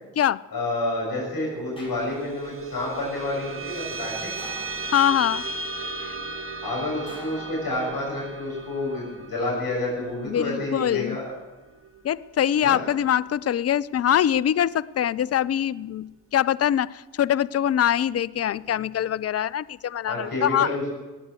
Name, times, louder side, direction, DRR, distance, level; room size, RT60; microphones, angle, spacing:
voice 1, 0.5-4.3 6.6-11.3 12.6-12.8 20.1-20.9, left 2 dB, 55° left, -3 dB, 7.3 m, -29 dB
sound 1, 1.8-2.5 4.4-5.3 7.1-8.2 9.6-10.1, left 1 dB, 10° left, 6.1 m, -46 dB
sound 2, 1.9-12.7, right 2 dB, 30° right, 1.4 m, -36 dB
voice 2, 4.9-5.5 6.0-6.1 10.3-11.2 12.0-20.7, left 10 dB, 35° left, 20 dB, 0.5 m, -23 dB
19.0 x 8.7 x 8.0 m, 1.2 s
hypercardioid pair, 40°, 44 cm